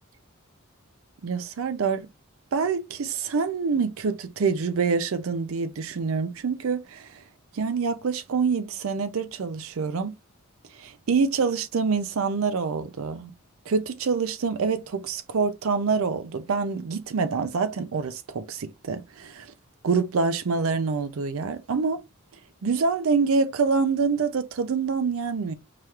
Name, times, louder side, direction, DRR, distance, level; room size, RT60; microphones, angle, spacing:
voice 1, 1.2-2.1 2.5-7.2 7.5-10.1 10.7-13.3 13.7-19.5 19.8-22.0 22.6-25.5, right 5 dB, 70° right, 0.5 m, -26 dB
4.8 x 2.9 x 2.3 m
head